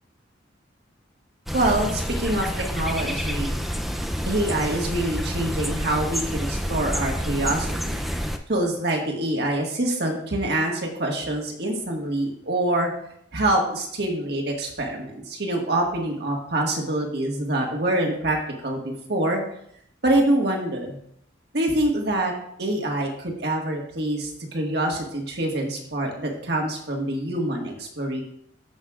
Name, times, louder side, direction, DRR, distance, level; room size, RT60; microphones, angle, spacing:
sound 1, 1.5-8.4, equal, ahead, 0.5 m, -28 dB
voice 1, 1.5-3.5 4.3-8.0 8.5-12.9 13.3-18.4 18.6-18.8 19.1-19.4 20.0-21.0 21.5-22.3 22.6-28.2, right 1 dB, 55° right, 1 dB, 1.8 m, -25 dB
15.0 x 6.5 x 2.5 m, 0.70 s
head